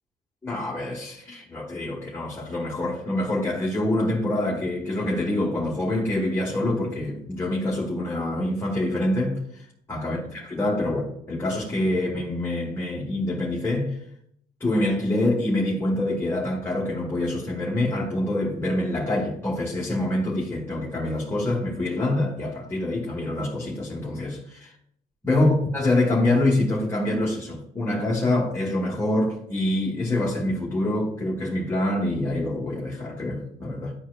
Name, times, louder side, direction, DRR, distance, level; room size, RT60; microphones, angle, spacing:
voice 1, 0.4-14.0 14.6-24.7 25.2-33.9, left 1 dB, 15° left, 1.3 m, -26 dB
10.5 x 4.4 x 2.3 m
cardioid pair, 110°, 17 cm